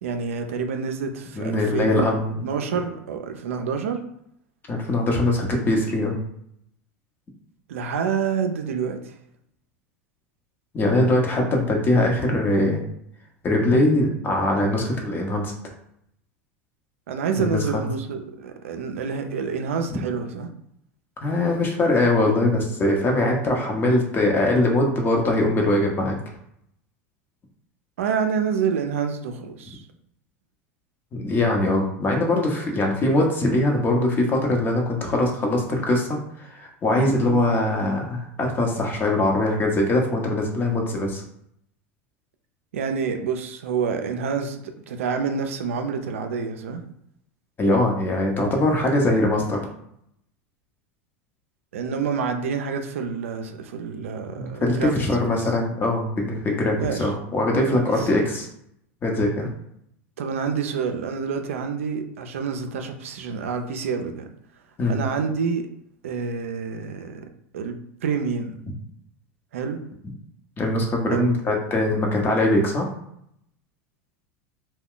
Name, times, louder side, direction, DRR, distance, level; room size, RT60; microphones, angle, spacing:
voice 1, 0.0-2.1 2.4-4.0 7.7-9.1 17.1-20.5 28.0-29.8 37.2-37.4 42.7-46.8 51.7-55.6 56.8-57.1 57.8-58.1 60.2-64.3 64.9-65.7 66.0-67.2 67.5-68.6 69.5-69.8 71.1-71.3, right 6 dB, 85° right, 6 dB, 0.4 m, -28 dB
voice 2, 1.4-2.4 4.7-6.2 10.7-12.8 13.4-15.5 17.4-17.9 19.9-20.0 21.2-26.2 31.1-41.2 47.6-49.6 54.4-58.5 59.0-59.5 64.8-65.0 70.6-72.9, left 1 dB, 30° left, 1 dB, 0.8 m, -22 dB
2.3 x 2.2 x 3.7 m, 0.75 s
hypercardioid pair, 100°, 7 cm